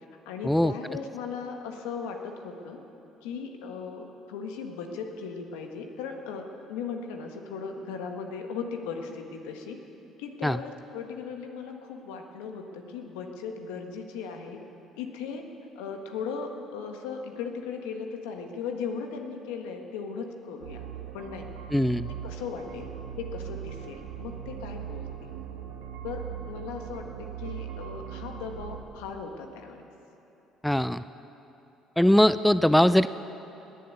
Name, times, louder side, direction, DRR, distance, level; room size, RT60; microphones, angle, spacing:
voice 1, 0.2-2.8 3.2-9.8 10.2-14.6 14.9-15.4 15.7-20.8 21.1-21.5 22.2-22.9 23.2-25.4 26.0-29.8, left 5 dB, 90° left, 4 dB, 1.4 m, -37 dB
sound 1, 20.6-28.8, right 9 dB, 90° right, 1.9 m, -39 dB
voice 2, 21.7-22.1 30.6-31.0 32.0-33.1, left 1 dB, 5° left, 14 dB, 0.4 m, -21 dB
20.5 x 7.7 x 8.1 m, 2.9 s
supercardioid pair, 75°, 0 cm